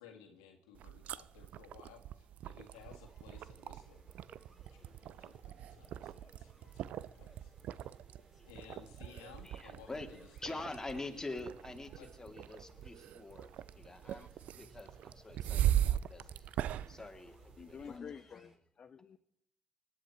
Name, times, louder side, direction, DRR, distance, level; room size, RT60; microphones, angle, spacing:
voice 1, 0.0-4.0 4.7-7.8 8.4-11.4 12.0-12.3, left 7 dB, 90° left, 1.8 m, -57 dB
sound 1, 0.7-18.0, right 11 dB, 70° right, 0.5 m, -40 dB
sound 2, 2.6-18.6, left 1 dB, 10° right, 6.2 m, -63 dB
voice 2, 9.4-10.1 10.4-13.5 13.8-16.5 16.9-18.0, left 2 dB, 20° left, 2.9 m, -46 dB
voice 3, 17.6-19.2, left 6 dB, 50° left, 0.7 m, -49 dB
25.5 x 11.0 x 4.5 m
hypercardioid pair, 45°, 2 cm